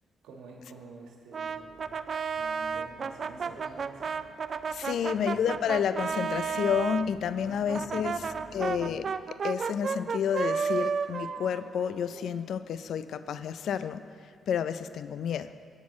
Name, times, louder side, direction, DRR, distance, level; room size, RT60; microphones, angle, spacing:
voice 1, 0.2-4.1 4.8-5.2 7.3-8.5, right 3 dB, 80° right, 0 dB, 1.6 m, -49 dB
Brass instrument, 1.3-7.1 7.7-12.4, right 6 dB, 55° right, 0.4 m, -32 dB
sound 1, 1.4-9.1, left 3 dB, 55° left, 1.4 m, -52 dB
voice 2, 4.7-14.0 14.5-15.5, left 8 dB, 70° left, 13 dB, 0.4 m, -30 dB
16.0 x 9.1 x 3.2 m, 2.3 s
supercardioid pair, 55°, 0 cm